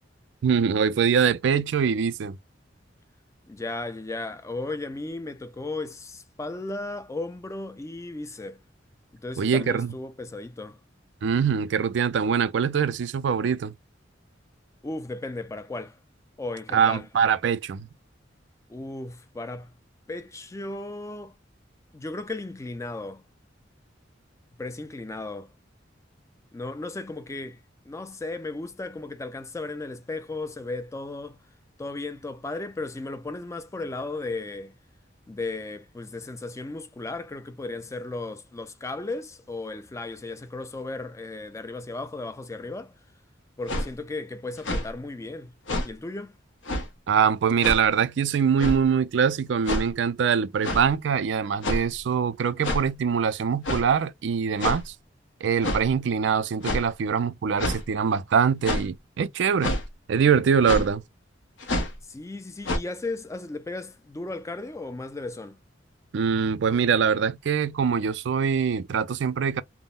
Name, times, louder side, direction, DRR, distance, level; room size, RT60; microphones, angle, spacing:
voice 1, 0.4-2.4 9.4-9.9 11.2-13.7 16.7-17.9 47.1-54.9 55.4-59.8 60.1-61.0 66.1-69.6, right 6 dB, 70° right, 0.4 m, -23 dB
voice 2, 3.4-8.6 9.1-10.8 14.8-16.0 16.4-17.1 18.7-19.7 20.1-21.4 21.9-23.2 24.5-25.5 26.5-31.4 31.8-34.7 35.3-42.9 43.6-45.5 45.8-46.3 62.0-65.6, left 2 dB, 15° left, 0.3 m, -35 dB
sound 1, 43.7-43.9 44.6-44.9 45.7-45.9 46.7-46.9 47.6-47.8 48.6-48.8 49.6-49.9 50.6-50.8 51.6-52.0 52.6-52.8 53.6-53.9 54.6-54.8 55.6-55.8 56.6-56.9 57.6-57.8 58.6-58.9 59.6-59.8 60.6-60.9 61.6-61.9 62.6-62.8, left 1 dB, 80° left, 0.8 m, -27 dB
3.5 x 2.0 x 2.3 m
head